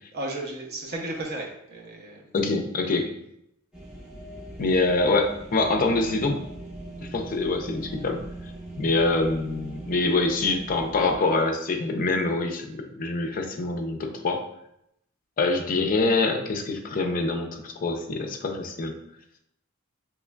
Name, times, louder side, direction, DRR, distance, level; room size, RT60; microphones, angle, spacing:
voice 1, 0.1-2.3, right 1 dB, 50° right, 0 dB, 0.6 m, -34 dB
voice 2, 2.3-3.1 4.6-6.4 7.1-8.2 8.8-14.4 15.4-19.0, left 3 dB, 40° left, 4 dB, 0.4 m, -25 dB
sound 1, 3.7-11.2, right 1 dB, 5° right, 0.6 m, -40 dB
3.4 x 3.1 x 2.2 m, 0.78 s
head